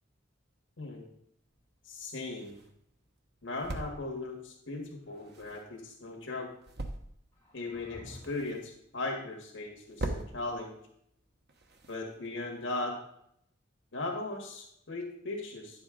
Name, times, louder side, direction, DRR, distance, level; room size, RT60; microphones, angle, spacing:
voice 1, 0.8-1.1 1.8-2.6 3.4-6.5 7.5-10.8 11.9-13.0 13.9-15.8, left 2 dB, 70° left, 0 dB, 1.7 m, -38 dB
sound 1, 1.4-12.6, right 2 dB, 55° right, 1.1 m, -45 dB
sound 2, 5.0-5.9 7.3-8.5, left 1 dB, 10° left, 4.2 m, -53 dB
10.5 x 7.7 x 3.7 m, 0.72 s
head